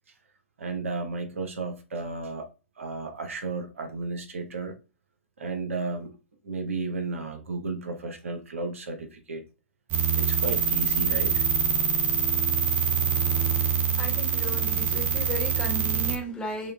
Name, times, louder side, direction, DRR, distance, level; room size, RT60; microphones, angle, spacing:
voice 1, 0.6-2.5 2.8-4.7 5.4-6.1 6.4-9.4 10.2-11.4, right 3 dB, 75° right, 0.9 m, -33 dB
sound 1, 9.9-16.2, right 7 dB, 25° right, 0.5 m, -25 dB
voice 2, 14.0-16.7, left 1 dB, 10° left, 1.3 m, -35 dB
6.2 x 2.4 x 2.3 m
figure-of-eight pair, 115°, 7 cm